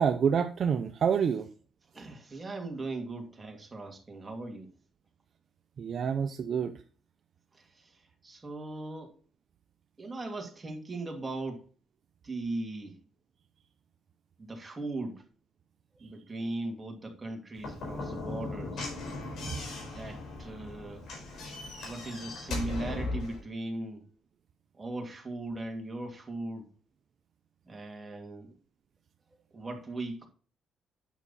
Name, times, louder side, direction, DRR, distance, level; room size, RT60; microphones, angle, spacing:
voice 1, 0.0-1.5 5.8-6.8 19.4-19.6, right 7 dB, 55° right, 0.7 m, -28 dB
voice 2, 1.9-4.7 7.5-9.1 10.0-11.7 12.2-13.0 14.4-15.3 16.0-18.9 20.0-21.1 21.8-24.1 24.8-26.7 27.7-28.5 29.5-30.3, right 2 dB, 25° right, 2.5 m, -39 dB
Slam / Knock, 17.6-23.4, left 2 dB, 70° left, 4.6 m, -38 dB
9.3 x 6.0 x 4.2 m
cardioid pair, 90°, 0 cm